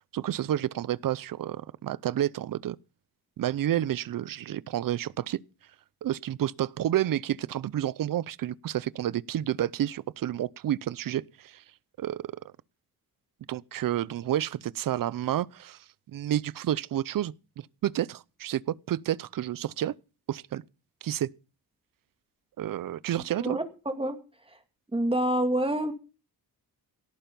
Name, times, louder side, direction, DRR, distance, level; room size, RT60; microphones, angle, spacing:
voice 1, 0.1-2.8 3.4-5.4 6.0-11.6 12.0-12.2 13.5-15.8 16.1-17.3 17.8-19.9 20.3-20.6 21.0-21.3 22.6-23.6, right 12 dB, 65° right, 0.7 m, -30 dB
voice 2, 23.4-24.2 24.9-25.9, right 1 dB, 15° right, 2.2 m, -27 dB
17.5 x 8.9 x 5.3 m
cardioid pair, 120°, 37 cm